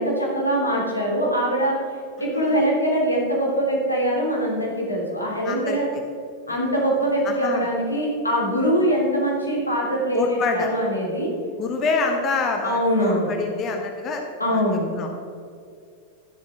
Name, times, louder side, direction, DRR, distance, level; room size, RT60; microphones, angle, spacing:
voice 1, 0.0-1.7 2.2-5.9 6.5-11.3 12.6-13.3 14.4-14.9, equal, 85° left, -2 dB, 3.0 m, -23 dB
voice 2, 5.4-6.0 6.5-6.6 7.2-7.7 10.1-10.7 11.6-14.2 14.5-14.6 15.0-15.1, left 4 dB, 30° left, 3 dB, 1.3 m, -26 dB
12.5 x 11.5 x 4.3 m, 2.3 s
figure-of-eight pair, 90°, 0 cm